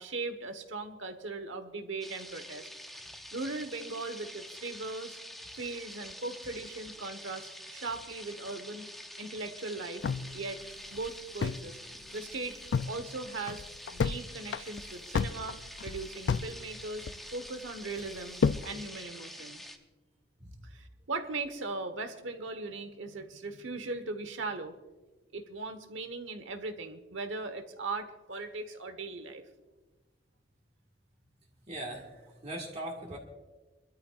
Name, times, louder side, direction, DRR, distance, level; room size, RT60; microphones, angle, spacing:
voice 1, 0.0-2.7 3.3-5.2 5.5-8.9 9.2-10.0 10.3-10.6 10.9-11.8 12.1-12.6 12.8-13.6 13.9-18.4 18.6-19.6 20.6-24.7 25.3-29.4, right 3 dB, 85° right, 8 dB, 1.3 m, -39 dB
sound 1, 2.0-19.8, equal, ahead, 0.8 m, -47 dB
sound 2, 10.0-11.7 12.0-12.1 12.4-12.9 13.3-14.2 14.5-16.5 16.8-17.5 18.0-18.7, left 5 dB, 65° left, 0.4 m, -31 dB
voice 2, 31.7-33.2, right 1 dB, 35° right, -2 dB, 1.7 m, -40 dB
25.0 x 13.0 x 2.5 m, 1.2 s
head